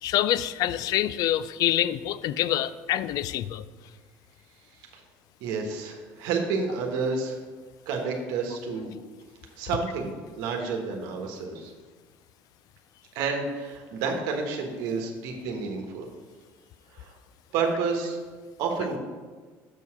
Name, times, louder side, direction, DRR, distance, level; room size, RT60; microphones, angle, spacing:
voice 1, 0.0-3.7, left 12 dB, 65° left, 16 dB, 0.4 m, -26 dB
voice 2, 5.4-7.4 7.9-8.9 9.6-11.7 13.1-16.1 16.9-17.1 17.5-18.2 18.6-19.0, right 4 dB, 75° right, 2 dB, 1.2 m, -30 dB
6.8 x 4.7 x 5.8 m, 1.4 s
supercardioid pair, 90°, 7 cm